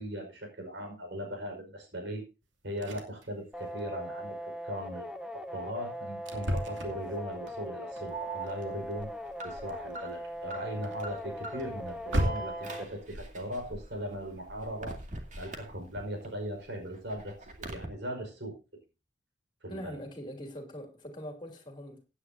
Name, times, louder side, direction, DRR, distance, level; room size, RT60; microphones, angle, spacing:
voice 1, 0.0-2.2 2.6-5.2 5.5-9.1 9.4-15.0 15.4-18.6 19.6-20.0, equal, 70° right, 5.0 m, -39 dB
sound 1, 2.4-2.5 2.7-3.3 3.6-3.8 4.2-4.4 4.9-5.0 5.6-5.7 6.3-12.8 14.6-15.1 15.6-15.7 16.1-16.2, equal, 90° right, 2.6 m, -36 dB
sound 2, 3.5-12.9, equal, 5° right, 0.9 m, -40 dB
Alarm, 8.1-16.3 16.6-17.9, right 3 dB, 40° right, 2.2 m, -43 dB
voice 2, 19.7-22.0, equal, 25° left, 3.0 m, -42 dB
16.5 x 9.8 x 2.7 m
head